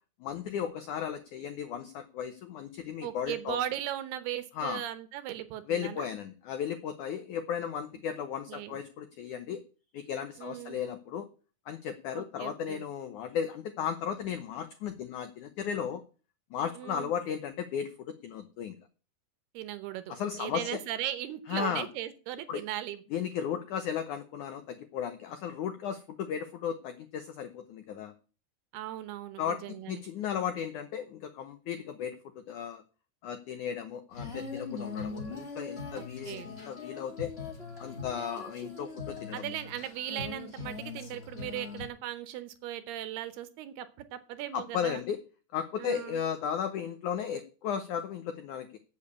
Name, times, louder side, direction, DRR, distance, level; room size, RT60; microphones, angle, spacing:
voice 1, 0.2-3.6 4.6-4.8 5.7-9.6 9.9-11.3 11.7-16.0 16.5-18.7 20.1-20.8 21.5-21.9 22.5-22.6 23.1-28.1 29.4-32.8 33.2-37.3 37.8-39.5 44.5-45.2 45.5-48.8, left 8 dB, 85° left, 9 dB, 1.7 m, -35 dB
voice 2, 3.0-6.1 8.5-8.8 10.4-10.8 12.1-12.8 16.8-17.1 19.5-23.0 28.7-30.0 36.0-36.5 39.3-45.0 45.8-46.2, right 12 dB, 75° right, 12 dB, 2.8 m, -38 dB
Female singing, 34.1-41.9, left 4 dB, 65° left, 0.6 m, -41 dB
8.3 x 8.2 x 8.3 m, 0.35 s
omnidirectional pair, 4.9 m